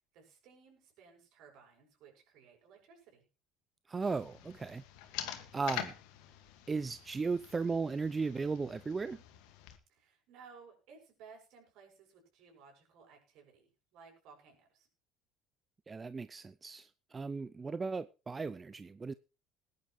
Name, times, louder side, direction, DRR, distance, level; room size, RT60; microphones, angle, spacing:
voice 1, 0.1-3.2 9.9-14.9, right 5 dB, 65° right, 7.1 m, -58 dB
voice 2, 3.9-4.8 5.5-5.9 6.7-9.2 15.9-19.1, right 4 dB, 25° right, 0.6 m, -36 dB
sound 1, 4.0-9.8, left 12 dB, 70° left, 1.9 m, -46 dB
21.0 x 10.5 x 3.2 m
hypercardioid pair, 65°, 0 cm